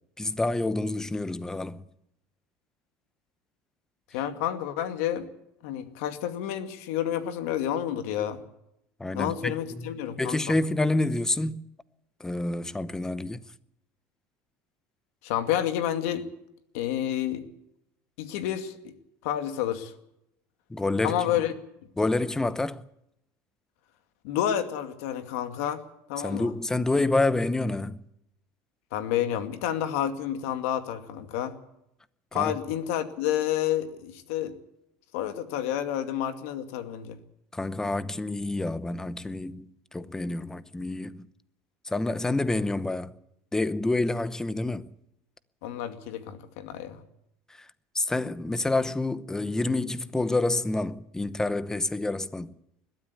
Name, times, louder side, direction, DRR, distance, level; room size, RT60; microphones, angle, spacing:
voice 1, 0.2-1.8 9.0-9.9 10.2-11.7 12.2-13.4 20.7-21.4 22.0-22.8 26.2-28.0 32.3-32.5 37.5-41.2 41.8-43.1 43.5-44.9 47.9-52.5, left 2 dB, 10° left, 0.8 m, -28 dB
voice 2, 4.1-5.3 5.6-8.4 9.1-10.5 15.2-16.3 16.7-17.4 18.2-18.7 19.2-19.9 21.0-21.5 24.2-25.8 26.1-26.5 28.9-31.5 32.3-34.5 35.1-37.2 45.6-47.0, left 11 dB, 85° left, 2.3 m, -29 dB
21.0 x 13.0 x 9.8 m
cardioid pair, 150°, 7 cm